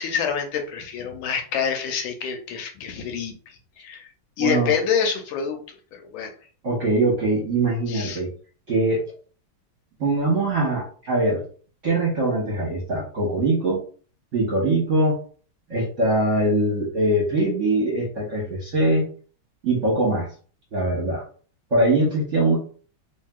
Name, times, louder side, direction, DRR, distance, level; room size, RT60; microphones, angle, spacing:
voice 1, 0.0-4.1 4.4-6.3 7.9-8.2, left 7 dB, 80° left, 4 dB, 1.3 m, -27 dB
voice 2, 4.4-4.7 6.6-8.3 8.7-9.0 10.0-11.5 11.8-13.8 14.3-15.2 15.7-19.0 19.6-20.3 20.7-21.2 21.7-22.6, right 2 dB, 50° right, -4 dB, 0.9 m, -22 dB
3.1 x 2.8 x 2.3 m, 0.42 s
omnidirectional pair, 2.2 m